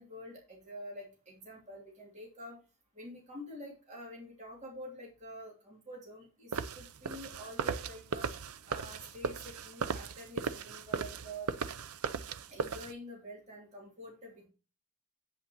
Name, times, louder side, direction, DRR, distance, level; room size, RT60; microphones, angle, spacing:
voice 1, 0.0-2.6 2.9-8.3 8.7-11.5 12.5-14.5, equal, 30° right, -3 dB, 2.9 m, -47 dB
sound 1, 6.5-12.9, right 5 dB, 80° right, 0.6 m, -37 dB
8.4 x 8.1 x 3.0 m, 0.34 s
head